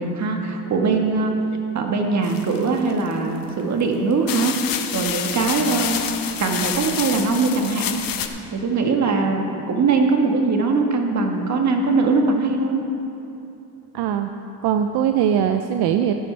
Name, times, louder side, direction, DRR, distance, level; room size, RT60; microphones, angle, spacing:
voice 1, 0.0-1.3 1.7-6.0 6.4-7.9 8.5-12.8, right 3 dB, 45° right, 2 dB, 1.5 m, -21 dB
sound 1, 2.2-3.1 3.8-3.9 4.3-8.3, left 9 dB, 55° left, 0.9 m, -28 dB
voice 2, 13.9-14.3 14.6-16.1, right 9 dB, 75° right, 7 dB, 0.6 m, -20 dB
14.5 x 11.5 x 3.3 m, 2.8 s
cardioid pair, 115°, 39 cm